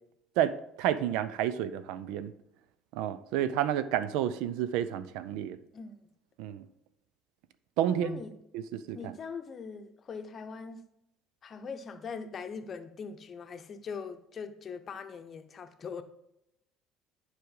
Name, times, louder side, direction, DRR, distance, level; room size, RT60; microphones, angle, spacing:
voice 1, 0.4-2.3 2.9-5.6 6.4-6.6 7.8-8.2 8.5-9.1, right 10 dB, 65° right, 0.4 m, -30 dB
voice 2, 7.8-8.4 8.9-10.8 11.4-16.0, left 5 dB, 40° left, 0.8 m, -41 dB
10.5 x 4.8 x 3.8 m
figure-of-eight pair, 55°, 0 cm